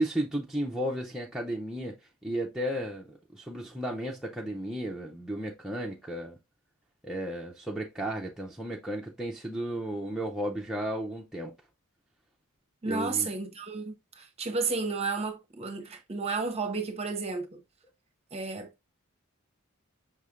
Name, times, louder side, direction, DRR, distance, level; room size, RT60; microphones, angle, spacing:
voice 1, 0.0-2.0 2.2-6.4 7.0-11.5 12.9-13.3, right 1 dB, ahead, 0.5 m, -33 dB
voice 2, 12.8-17.6 18.3-18.9, right 4 dB, 30° right, 0.7 m, -32 dB
5.5 x 3.2 x 2.4 m
head